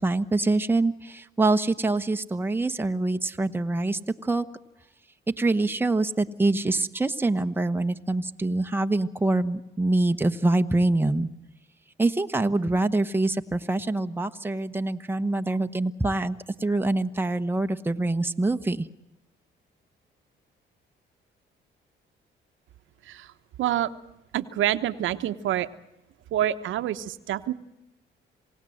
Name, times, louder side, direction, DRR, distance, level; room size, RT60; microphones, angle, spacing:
voice 1, 0.0-4.5 5.4-11.3 12.0-18.9, right 2 dB, 10° right, 7 dB, 1.1 m, -25 dB
voice 2, 23.6-23.9 24.3-25.7 26.3-27.5, right 12 dB, 80° right, 10 dB, 1.1 m, -27 dB
27.5 x 18.0 x 7.8 m, 0.93 s
cardioid pair, 90°, 20 cm